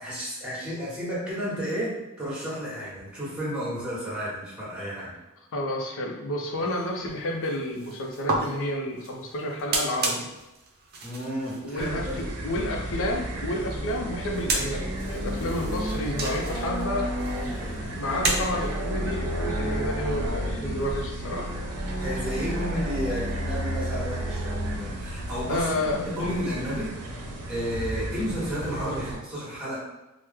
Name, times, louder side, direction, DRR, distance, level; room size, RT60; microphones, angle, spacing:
voice 1, 0.0-5.1 11.0-12.2 18.1-18.3 22.0-25.7 26.0-27.0 27.5-29.8, equal, 5° right, -8 dB, 1.2 m, -32 dB
voice 2, 5.5-10.3 11.6-17.1 18.0-21.5 25.5-26.3, left 1 dB, 60° left, 2 dB, 0.5 m, -30 dB
sound 1, 6.6-18.9, right 3 dB, 45° right, 0.5 m, -34 dB
sound 2, 11.8-29.2, equal, 90° right, 0.6 m, -32 dB
3.1 x 2.0 x 3.4 m, 0.99 s
head